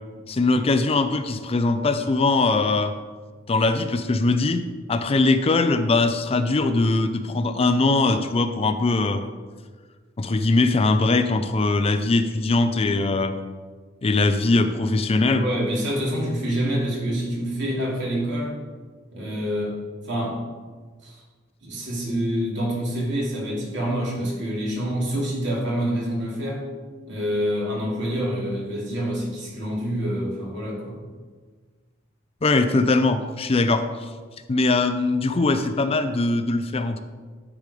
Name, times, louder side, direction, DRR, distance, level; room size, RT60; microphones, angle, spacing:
voice 1, 0.3-2.9 3.5-4.6 4.9-9.2 10.2-13.3 14.0-15.4 32.4-34.1 34.5-37.0, left 3 dB, 30° left, 9 dB, 0.5 m, -21 dB
voice 2, 15.4-18.5 19.1-19.8 20.0-20.4 21.0-21.2 21.6-26.6 27.1-31.0, equal, 60° right, -4 dB, 3.0 m, -26 dB
12.0 x 5.0 x 5.0 m, 1.5 s
head